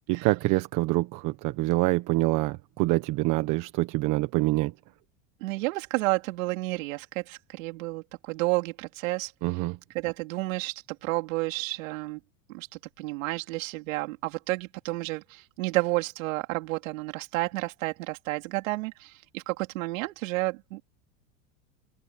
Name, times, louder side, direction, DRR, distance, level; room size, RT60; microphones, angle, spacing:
voice 1, 0.1-4.7 9.4-9.8, right 20 dB, 50° right, 1.3 m, -26 dB
voice 2, 5.4-9.3 9.9-12.2 12.5-12.7 13.0-20.8, right 21 dB, 75° right, 3.8 m, -31 dB
supercardioid pair, 125°, 40 cm